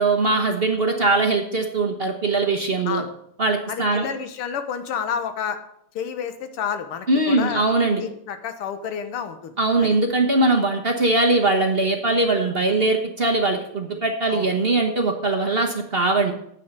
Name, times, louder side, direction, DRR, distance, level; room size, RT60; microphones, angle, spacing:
voice 1, 0.0-3.0 3.4-4.1 7.1-8.0 9.6-16.3, right 2 dB, 35° right, 2 dB, 1.0 m, -21 dB
voice 2, 3.7-5.6 5.9-7.6 8.0-10.0 14.3-14.5, left 7 dB, 80° left, 9 dB, 2.1 m, -30 dB
9.1 x 8.4 x 6.7 m, 0.73 s
omnidirectional pair, 2.4 m